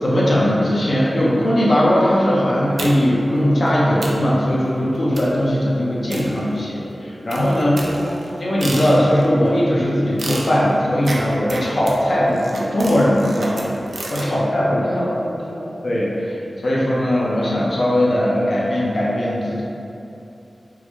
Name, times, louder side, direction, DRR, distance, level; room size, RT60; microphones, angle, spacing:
voice 1, 0.0-7.8 8.4-13.5 14.1-15.1 15.8-16.4 16.6-19.6, equal, 60° left, -6 dB, 0.6 m, -19 dB
voice 2, 2.5-2.9 7.7-8.5 14.2-15.8, equal, ahead, -4 dB, 0.5 m, -32 dB
sound 1, 2.8-3.3 3.7-3.8 4.0-4.3 5.2-5.5 6.1-6.8 7.3-9.3 10.2-14.3, right 1 dB, 70° right, 0.4 m, -31 dB
3.7 x 2.1 x 3.0 m, 2.8 s
wide cardioid pair, 85°, 0 cm